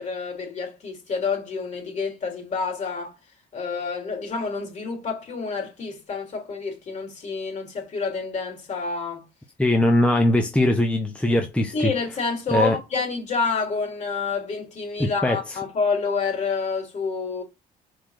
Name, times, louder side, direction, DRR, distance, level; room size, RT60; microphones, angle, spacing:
voice 1, 0.0-3.1 3.5-9.2 11.7-17.4, left 4 dB, 45° left, 3.7 m, -28 dB
voice 2, 9.6-11.9 12.5-12.7 15.0-15.6, left 1 dB, 5° left, 1.0 m, -21 dB
5.0 x 4.3 x 5.8 m
cardioid pair, 110°, 17 cm